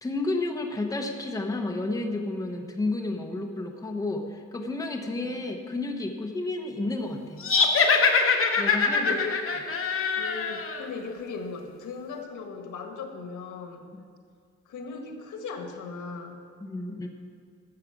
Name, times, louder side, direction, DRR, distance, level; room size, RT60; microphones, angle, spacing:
voice 1, 0.0-7.4 8.6-9.1 13.9-14.0 16.6-17.1, left 2 dB, 10° left, 3 dB, 0.9 m, -31 dB
sound 1, 7.4-10.8, left 4 dB, 45° left, 1.1 m, -23 dB
voice 2, 9.0-9.4 10.2-13.8 14.6-16.4, left 4 dB, 90° left, 4 dB, 1.6 m, -37 dB
12.5 x 7.4 x 7.1 m, 2.2 s
wide cardioid pair, 160°, 29 cm